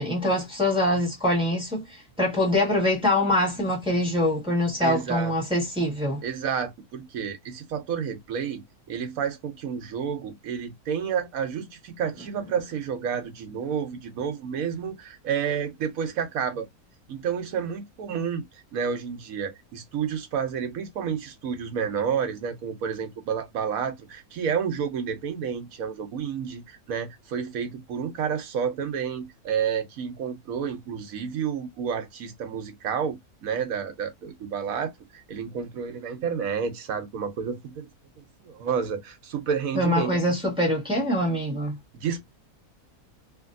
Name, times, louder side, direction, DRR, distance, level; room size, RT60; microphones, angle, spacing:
voice 1, 0.0-6.2 39.7-41.8, left 1 dB, 5° right, 1.8 m, -24 dB
voice 2, 4.8-5.3 6.2-8.6 8.9-16.7 17.1-18.4 18.7-37.9 38.4-40.3 41.9-42.2, right 7 dB, 70° right, 1.2 m, -30 dB
3.2 x 2.9 x 2.5 m
omnidirectional pair, 1.6 m